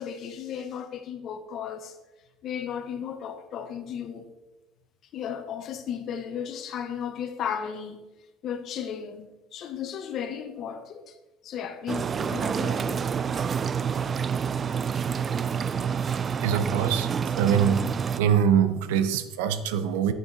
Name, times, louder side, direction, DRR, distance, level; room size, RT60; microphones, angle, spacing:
voice 1, 0.0-2.0 2.4-4.2 5.1-8.0 8.4-11.1 11.4-13.1, left 8 dB, 55° left, 1.0 m, -35 dB
sound 1, 11.9-18.2, right 7 dB, 35° right, 0.3 m, -28 dB
voice 2, 16.4-17.9 18.2-20.1, right 8 dB, 90° right, 0.6 m, -23 dB
9.1 x 5.8 x 4.0 m
supercardioid pair, 100°, 0 cm